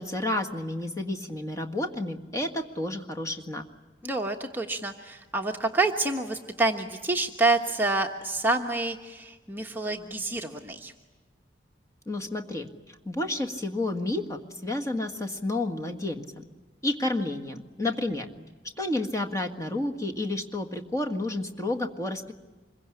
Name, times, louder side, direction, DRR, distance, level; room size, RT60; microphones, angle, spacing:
voice 1, 0.0-3.6 12.1-16.4 16.8-18.3 18.8-22.3, left 2 dB, 15° left, 4 dB, 1.7 m, -31 dB
voice 2, 4.0-10.9, right 2 dB, 10° right, 2 dB, 1.2 m, -28 dB
26.0 x 22.5 x 10.0 m, 1.2 s
head